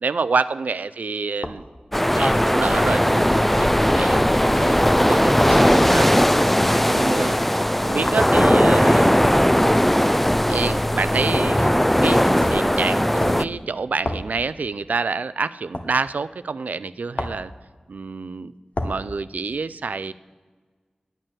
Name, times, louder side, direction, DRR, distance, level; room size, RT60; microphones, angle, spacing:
voice 1, 0.0-1.6 2.1-6.1 6.9-7.4 7.8-9.1 10.5-11.7 12.0-17.5 17.9-18.5 18.8-20.1, right 4 dB, 80° right, 15 dB, 0.3 m, -27 dB
sound 1, 1.4-1.6 2.8-3.0 4.2-4.3 5.4-5.6 6.6-6.8 8.1-8.3 9.6-9.8 11.3-11.6 12.4-12.7 13.2-13.5 14.0-14.3 15.7-15.9 17.2-17.5 18.7-19.0, left 2 dB, 55° left, 1.0 m, -29 dB
sound 2, 1.9-13.4, equal, 5° left, 0.3 m, -18 dB
9.1 x 8.9 x 7.4 m, 1.4 s
wide cardioid pair, 60°, 3 cm